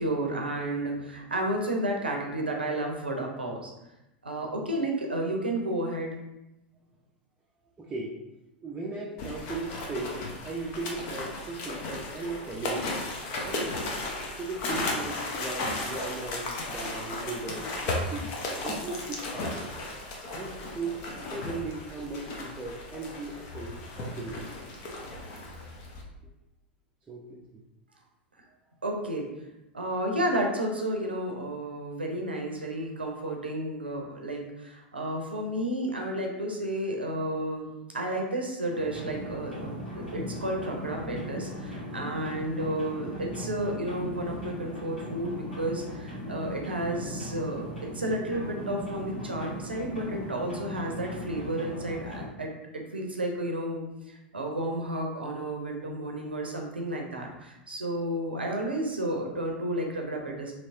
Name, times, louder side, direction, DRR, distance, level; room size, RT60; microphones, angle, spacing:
voice 1, 0.0-3.7 4.2-6.1 28.8-29.3 29.7-60.5, right 1 dB, 85° right, 1 dB, 0.6 m, -32 dB
voice 2, 7.8-8.2 8.6-13.7 14.3-18.3 18.6-19.7 20.3-24.5 27.1-27.6 36.0-36.1 55.2-55.6, right 3 dB, 20° right, -3 dB, 0.5 m, -38 dB
sound 1, 9.2-26.0, left 2 dB, 45° left, 0.7 m, -35 dB
sound 2, 38.7-52.3, equal, 85° left, 1.4 m, -38 dB
3.1 x 3.0 x 2.6 m, 0.92 s
figure-of-eight pair, 90°, 5 cm